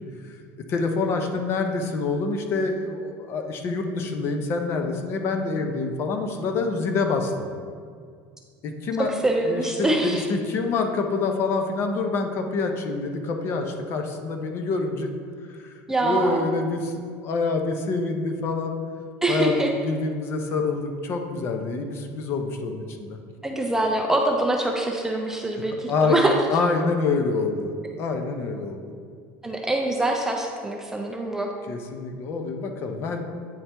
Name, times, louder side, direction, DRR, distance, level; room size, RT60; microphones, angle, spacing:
voice 1, 0.7-7.5 8.6-9.1 9.5-15.1 15.5-15.7 16.0-18.8 19.3-23.2 25.9-26.2 26.5-28.9 31.7-33.2, left 3 dB, 35° left, 5 dB, 0.6 m, -26 dB
voice 2, 9.0-10.3 15.9-16.5 19.2-19.7 23.4-26.4 29.4-31.5, right 2 dB, 5° right, 1 dB, 0.3 m, -24 dB
8.8 x 4.3 x 3.3 m, 2.1 s
cardioid pair, 160°, 7 cm